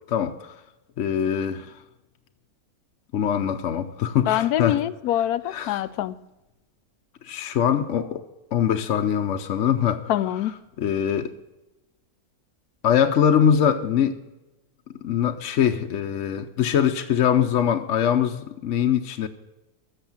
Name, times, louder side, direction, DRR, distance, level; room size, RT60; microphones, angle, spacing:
voice 1, 0.1-0.5 1.0-1.7 3.1-4.8 5.5-5.8 7.3-8.2 8.5-10.1 10.8-11.3 12.8-14.2 15.0-19.3, left 8 dB, 60° left, 0.9 m, -22 dB
voice 2, 4.3-6.1 10.1-10.5, left 12 dB, 80° left, 1.1 m, -24 dB
13.5 x 6.9 x 7.2 m
omnidirectional pair, 1.6 m